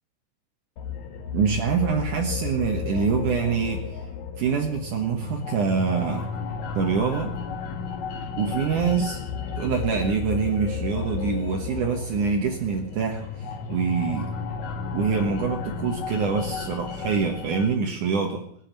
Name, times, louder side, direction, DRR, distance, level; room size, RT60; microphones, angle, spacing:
sound 1, 0.8-17.8, left 6 dB, 70° left, 1.7 m, -33 dB
voice 1, 1.3-3.8 4.4-6.3 6.7-7.3 8.4-9.2 9.6-13.2 13.7-14.3 14.9-18.4, right 6 dB, 75° right, 1 dB, 1.8 m, -25 dB
18.5 x 10.0 x 7.4 m, 0.67 s
omnidirectional pair, 5.9 m